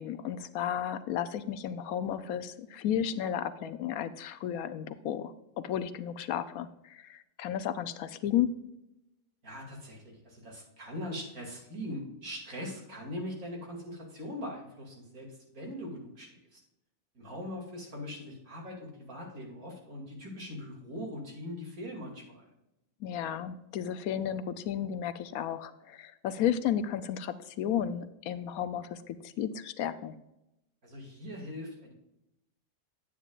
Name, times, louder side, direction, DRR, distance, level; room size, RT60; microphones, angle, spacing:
voice 1, 0.0-5.3 5.6-8.5 23.0-30.2, left 9 dB, 75° left, 12 dB, 1.0 m, -33 dB
voice 2, 9.4-16.6 17.1-22.5 30.8-31.9, left 1 dB, 70° right, -1 dB, 3.0 m, -41 dB
9.4 x 8.9 x 2.4 m, 0.88 s
omnidirectional pair, 1.6 m